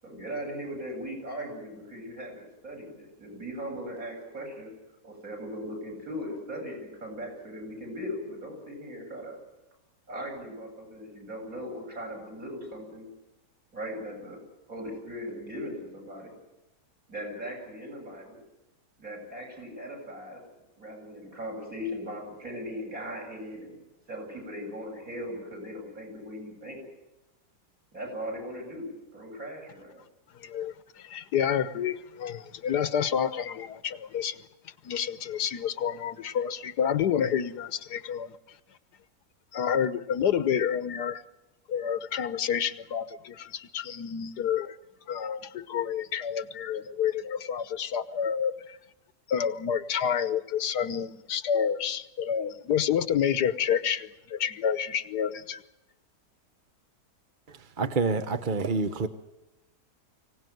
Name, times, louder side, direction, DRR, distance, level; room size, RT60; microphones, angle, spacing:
voice 1, 0.0-4.7 5.0-9.4 10.1-13.1 13.7-14.4 14.7-16.3 17.1-18.4 19.0-20.4 20.8-23.8 24.1-26.8 27.9-30.0, equal, 55° right, 0 dB, 8.4 m, -38 dB
voice 2, 30.4-34.4 34.8-38.4 39.5-41.2 41.7-44.8 45.1-48.8 49.3-55.6, left 8 dB, 75° left, 15 dB, 1.5 m, -29 dB
voice 3, 57.5-59.1, right 4 dB, 35° right, 9 dB, 1.0 m, -28 dB
24.5 x 17.5 x 9.3 m, 0.99 s
omnidirectional pair, 1.7 m